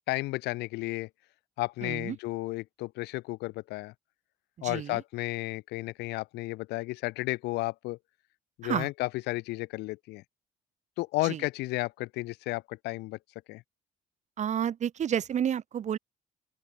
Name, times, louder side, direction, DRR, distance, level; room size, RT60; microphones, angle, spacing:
voice 1, 0.1-1.1 1.6-3.9 4.6-8.0 8.6-10.2 11.0-13.2 13.5-13.6, left 20 dB, 80° left, 0.5 m, -33 dB
voice 2, 1.8-2.2 4.6-5.0 8.6-8.9 11.3-11.4 14.4-16.0, right 9 dB, 45° right, 1.1 m, -30 dB
open air
cardioid pair, 110°, 17 cm